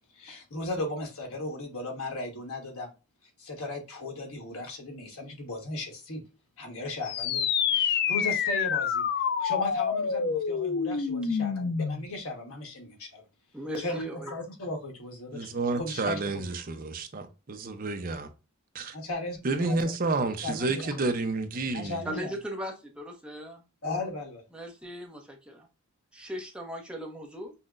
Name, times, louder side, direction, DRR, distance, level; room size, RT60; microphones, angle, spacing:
voice 1, 0.1-2.9 3.4-6.2 6.6-9.1 9.4-13.2 13.8-16.5 18.9-19.9 20.4-21.0 21.7-22.3 23.8-24.4, left 2 dB, 70° left, 1.3 m, -36 dB
sound 1, 7.0-12.1, left 6 dB, 45° left, 0.4 m, -27 dB
voice 2, 13.5-14.3 22.0-23.6 24.5-25.7 26.1-27.5, equal, 5° right, 0.7 m, -38 dB
voice 3, 15.3-18.3 18.7-18.9 19.4-22.0, right 3 dB, 40° right, 0.6 m, -30 dB
5.5 x 2.1 x 2.4 m
head